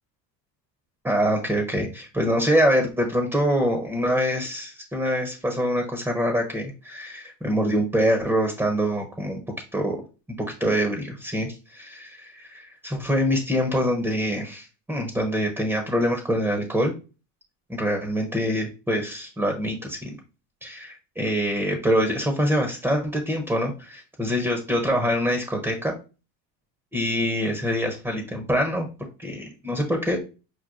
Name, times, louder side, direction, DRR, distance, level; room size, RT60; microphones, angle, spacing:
voice 1, 1.0-9.4 9.7-10.0 10.6-16.9 17.7-20.1 20.6-25.9 26.9-28.9 29.2-30.3, equal, 5° right, 4 dB, 0.4 m, -25 dB
5.9 x 2.2 x 2.4 m, 0.32 s
supercardioid pair, 120°, 48 cm